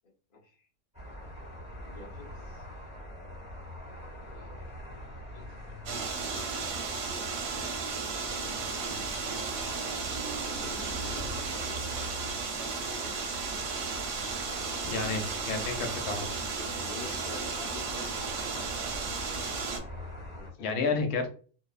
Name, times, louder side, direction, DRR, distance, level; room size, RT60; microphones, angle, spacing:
voice 1, 0.0-0.7 1.8-2.6 4.3-5.8 6.2-6.5 8.8-9.5 10.6-13.3 16.6-18.2 20.3-21.0, left 4 dB, 50° left, 1 dB, 0.6 m, -50 dB
sound 1, 0.9-20.5, equal, 5° right, 0.6 m, -43 dB
sound 2, 5.9-19.8, right 4 dB, 85° right, 1.2 m, -34 dB
voice 2, 14.8-16.3 20.6-21.3, left 4 dB, 80° left, 5 dB, 1.1 m, -31 dB
2.9 x 2.0 x 2.3 m, 0.39 s
omnidirectional pair, 1.6 m